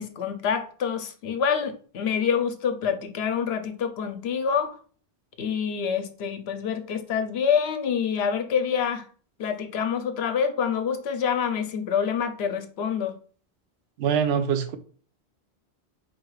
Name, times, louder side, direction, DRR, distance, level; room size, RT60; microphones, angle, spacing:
voice 1, 0.0-4.8 5.4-9.0 9.4-13.2, left 7 dB, 75° left, 0.9 m, -26 dB
voice 2, 14.0-14.8, right 7 dB, 75° right, 0.8 m, -23 dB
4.2 x 2.3 x 4.7 m
omnidirectional pair, 1.1 m